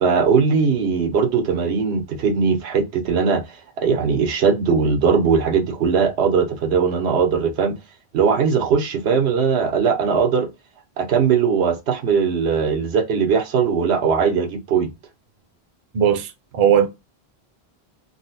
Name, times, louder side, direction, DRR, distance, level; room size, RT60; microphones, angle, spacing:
voice 1, 0.0-3.4 3.8-7.8 8.1-10.5 11.0-14.9, right 6 dB, 90° right, 1.0 m, -19 dB
voice 2, 15.9-16.9, right 9 dB, 50° right, 0.5 m, -18 dB
3.8 x 2.0 x 2.5 m
omnidirectional pair, 1.1 m